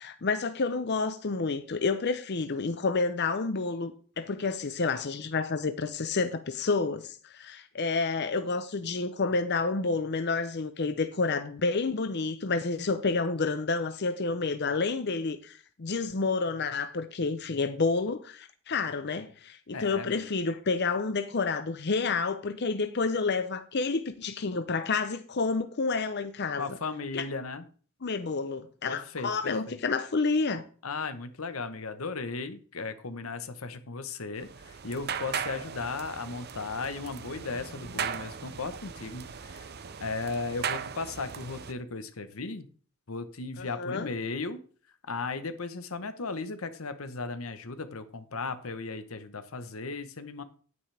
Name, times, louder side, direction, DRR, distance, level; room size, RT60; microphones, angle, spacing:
voice 1, 0.0-26.7 27.1-27.2 28.0-30.6 43.6-44.1, left 4 dB, 55° left, 0.7 m, -29 dB
voice 2, 19.7-20.3 26.6-27.6 28.9-29.8 30.8-39.7 40.0-42.7 43.1-44.6 45.1-50.4, left 4 dB, 85° left, 1.1 m, -36 dB
sound 1, 34.4-41.7, right 7 dB, 50° right, 0.7 m, -38 dB
10.0 x 9.5 x 3.4 m
head